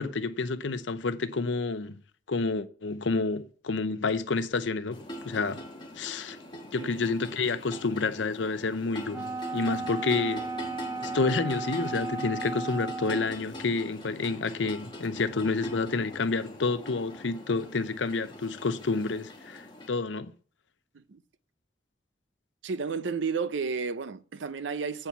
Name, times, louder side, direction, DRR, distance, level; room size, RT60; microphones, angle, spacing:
voice 1, 0.0-2.0 2.3-5.6 6.0-6.4 6.7-10.5 11.0-20.3, left 3 dB, 80° left, 0.7 m, -29 dB
sound 1, 4.9-19.9, equal, 25° left, 1.2 m, -43 dB
Wind instrument woodwind instrument, 9.1-13.4, right 4 dB, 20° right, 0.5 m, -35 dB
voice 2, 22.6-25.1, right 5 dB, 80° right, 0.6 m, -32 dB
8.6 x 4.5 x 5.7 m
head